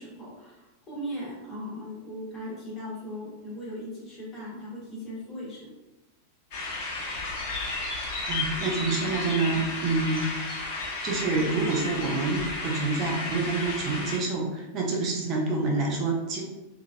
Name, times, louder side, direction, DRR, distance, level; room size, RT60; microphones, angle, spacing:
voice 1, 0.0-5.7, equal, 20° left, -6 dB, 1.2 m, -38 dB
sound 1, 6.5-14.2, left 2 dB, 45° left, 1.0 m, -33 dB
voice 2, 8.2-10.3 11.0-16.4, right 3 dB, 35° right, -1 dB, 0.6 m, -27 dB
3.1 x 2.3 x 2.2 m, 1.0 s
figure-of-eight pair, 90°, 0 cm